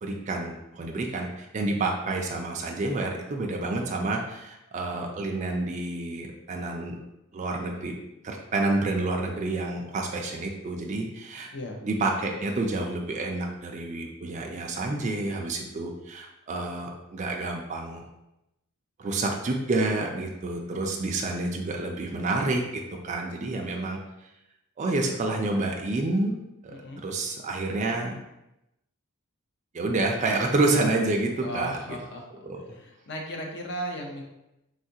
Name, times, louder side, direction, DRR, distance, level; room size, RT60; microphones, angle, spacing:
voice 1, 0.0-7.0 7.3-8.0 8.2-11.5 11.8-18.0 19.0-24.0 24.8-26.3 26.6-28.2 29.7-31.8 32.4-32.7, right 2 dB, 35° right, 1 dB, 0.3 m, -29 dB
voice 2, 26.7-27.0 31.4-32.2 32.7-34.2, equal, 55° left, 2 dB, 0.6 m, -35 dB
3.7 x 2.3 x 2.7 m, 0.90 s
head